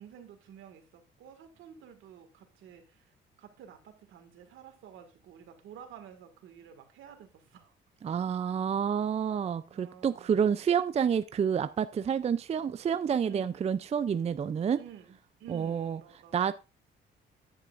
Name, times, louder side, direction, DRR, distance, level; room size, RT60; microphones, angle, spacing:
voice 1, 0.0-3.1 3.4-7.7 9.7-10.5 13.2-13.8 14.8-16.4, right 9 dB, 80° right, 6 dB, 2.0 m, -51 dB
voice 2, 8.0-14.8 15.5-16.0 16.3-16.5, right 7 dB, 35° right, 13 dB, 0.4 m, -29 dB
10.5 x 9.3 x 2.5 m, 0.29 s
cardioid pair, 90°, 20 cm